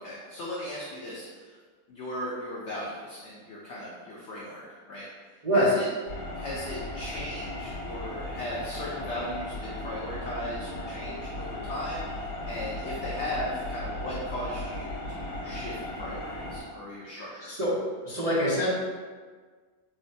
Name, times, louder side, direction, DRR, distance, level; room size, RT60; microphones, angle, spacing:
voice 1, 0.0-1.6 1.9-5.1 5.5-5.9 6.3-12.1 12.5-17.5, left 1 dB, 80° left, -5 dB, 0.6 m, -37 dB
sound 1, 6.1-16.6, left 1 dB, 60° left, 1.0 m, -36 dB
voice 2, 18.0-18.7, equal, 55° right, -13 dB, 0.4 m, -24 dB
3.7 x 2.1 x 2.6 m, 1.5 s
omnidirectional pair, 1.8 m